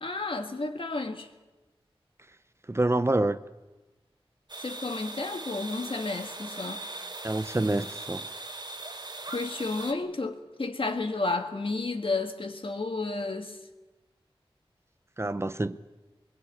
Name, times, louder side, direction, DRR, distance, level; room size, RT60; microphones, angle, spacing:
voice 1, 0.0-1.3 4.6-6.8 9.3-13.6, left 3 dB, 65° left, 1.8 m, -32 dB
voice 2, 2.7-3.4 7.2-8.2 15.2-15.8, right 2 dB, 25° right, 0.7 m, -27 dB
sound 1, 4.5-9.9, right 2 dB, 50° right, 1.8 m, -40 dB
22.0 x 22.0 x 8.4 m
wide cardioid pair, 70°, 10 cm